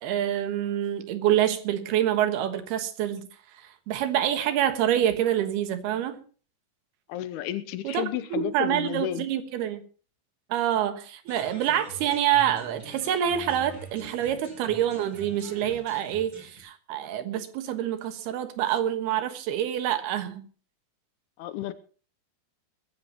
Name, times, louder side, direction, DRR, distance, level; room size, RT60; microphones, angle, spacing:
voice 1, 0.0-3.3 3.6-6.2 7.9-9.8 10.5-20.5, right 11 dB, 85° right, 3.4 m, -27 dB
voice 2, 7.1-9.3 21.4-21.7, left 11 dB, 85° left, 2.8 m, -32 dB
sound 1, 11.3-16.6, right 2 dB, 35° right, 7.2 m, -45 dB
21.0 x 14.5 x 3.0 m
omnidirectional pair, 4.5 m